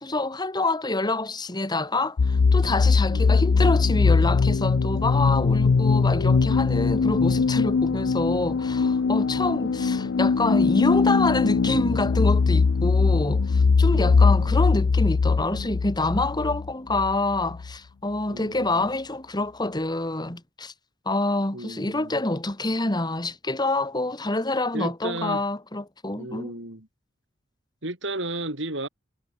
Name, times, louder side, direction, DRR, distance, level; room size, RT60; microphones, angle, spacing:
voice 1, 0.0-20.7 21.1-26.5, left 2 dB, 25° left, 2.2 m, -27 dB
sound 1, 2.2-17.7, left 4 dB, 80° left, 0.5 m, -21 dB
voice 2, 3.1-3.4 9.4-10.1 13.9-14.7 18.3-18.9 21.5-22.2 24.7-25.4 26.2-26.9 27.8-28.9, right 2 dB, 75° right, 6.7 m, -35 dB
head